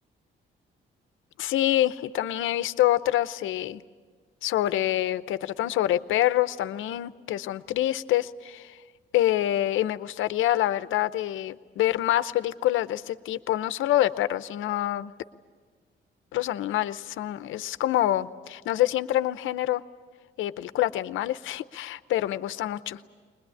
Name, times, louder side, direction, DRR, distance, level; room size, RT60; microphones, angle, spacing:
voice 1, 1.4-3.8 4.4-8.8 9.1-15.1 16.3-19.8 20.4-23.0, left 13 dB, 80° left, 14 dB, 0.7 m, -26 dB
21.0 x 21.0 x 9.8 m, 1.5 s
cardioid pair, 90°, 20 cm